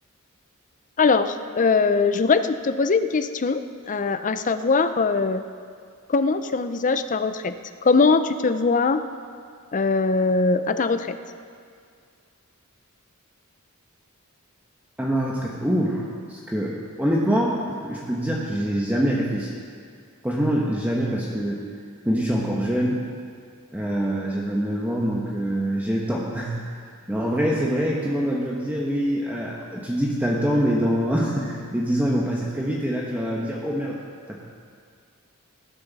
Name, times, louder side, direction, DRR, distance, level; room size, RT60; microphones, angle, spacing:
voice 1, 1.0-5.4 6.1-7.5 7.8-9.0 9.7-11.2, left 4 dB, 35° left, 10 dB, 0.5 m, -21 dB
voice 2, 15.0-19.6 20.2-21.6 22.0-23.0 23.7-26.6 27.1-34.0 34.3-34.4, equal, 5° right, -4 dB, 1.1 m, -25 dB
19.0 x 10.5 x 4.1 m, 2.2 s
head